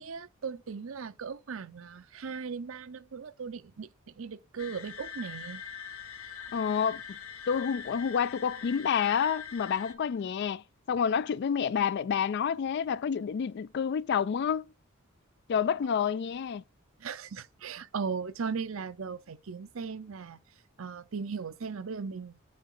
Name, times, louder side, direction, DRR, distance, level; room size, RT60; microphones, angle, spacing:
voice 1, 0.0-5.6 17.0-20.4 20.8-22.4, right 5 dB, 70° right, 0.6 m, -38 dB
sound 1, 4.6-9.9, left 7 dB, 75° left, 1.0 m, -43 dB
voice 2, 6.5-7.2 7.5-14.7 15.5-16.6, left 7 dB, 55° left, 0.3 m, -29 dB
8.6 x 4.0 x 3.8 m
head